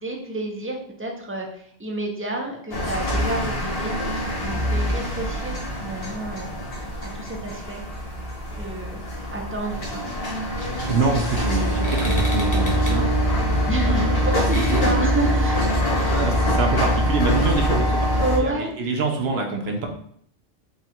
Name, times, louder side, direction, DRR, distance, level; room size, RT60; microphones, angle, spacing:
voice 1, 0.0-4.1 4.4-6.5 7.1-7.8 8.6-9.0 9.3-10.1 13.7-15.7 16.0-16.2 16.7-16.9 18.1-18.7, right 2 dB, 15° right, 1 dB, 0.5 m, -29 dB
sound 1, 2.7-18.4, equal, 60° left, 1.2 m, -24 dB
sound 2, 10.6-16.2, equal, 20° left, 1.0 m, -38 dB
voice 2, 10.9-14.8 15.8-19.9, right 4 dB, 70° right, 2 dB, 0.9 m, -26 dB
3.8 x 2.4 x 4.3 m, 0.63 s
omnidirectional pair, 1.1 m